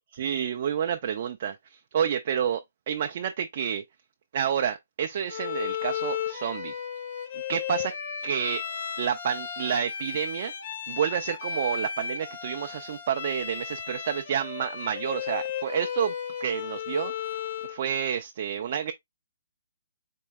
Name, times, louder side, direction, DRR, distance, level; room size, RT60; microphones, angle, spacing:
voice 1, 0.2-3.8 4.3-6.7 7.5-7.9 8.2-8.6 9.0-10.5 10.9-16.1 16.4-17.1 17.7-18.9, right 8 dB, 35° right, 0.4 m, -29 dB
Bowed string instrument, 5.3-17.8, left 8 dB, 40° left, 1.0 m, -34 dB
4.5 x 3.1 x 2.3 m
hypercardioid pair, 175°, 0 cm